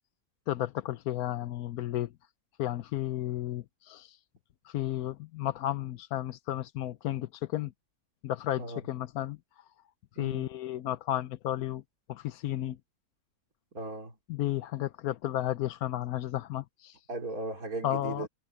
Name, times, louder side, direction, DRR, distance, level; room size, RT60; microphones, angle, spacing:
voice 1, 0.5-2.1 2.6-4.2 4.6-7.7 8.2-9.4 10.2-11.8 12.1-12.8 14.3-17.0 17.8-18.3, left 13 dB, 85° left, 1.2 m, -33 dB
voice 2, 10.2-10.5 13.7-14.1 17.1-18.3, right 3 dB, 75° right, 4.0 m, -37 dB
omnidirectional pair, 1.5 m